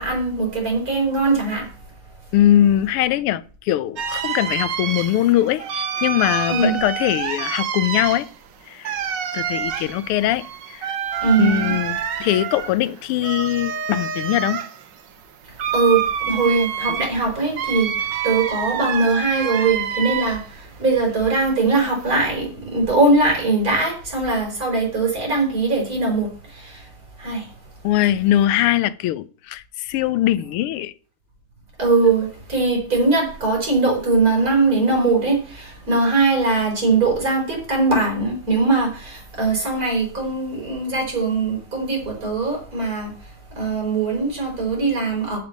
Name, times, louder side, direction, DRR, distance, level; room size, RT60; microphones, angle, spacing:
voice 1, 0.0-1.7 6.5-6.8 11.2-11.8 15.7-16.0 16.3-26.9 27.2-27.5 31.8-45.4, right 3 dB, 40° right, 4.9 m, -21 dB
voice 2, 2.3-8.3 8.7-8.9 9.3-11.0 11.4-14.6 27.8-30.9, left 12 dB, 90° left, 1.6 m, -21 dB
sound 1, 4.0-20.6 21.0-22.1, right 8 dB, 60° right, 1.5 m, -27 dB
7.7 x 7.2 x 8.4 m
omnidirectional pair, 2.4 m